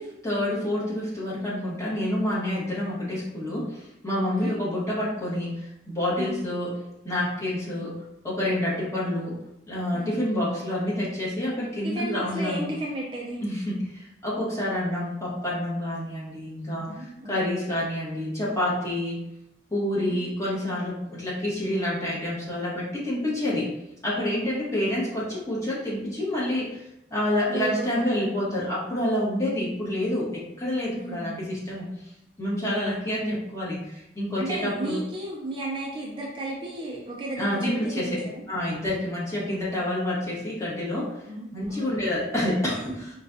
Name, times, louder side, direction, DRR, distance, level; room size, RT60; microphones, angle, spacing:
voice 1, 0.0-6.7 7.0-8.0 8.2-9.4 9.7-12.7 13.4-19.2 19.7-23.7 24.0-26.8 27.1-31.9 32.4-35.0 37.4-38.2 38.5-41.2 41.5-43.1, left 1 dB, 15° left, -8 dB, 1.2 m, -28 dB
voice 2, 11.8-13.4 16.9-17.3 20.0-20.1 24.3-24.6 27.5-28.1 31.0-31.4 32.7-33.0 34.4-38.4 41.3-41.9, right 2 dB, 30° right, -4 dB, 0.5 m, -34 dB
4.3 x 2.2 x 2.6 m, 0.83 s
head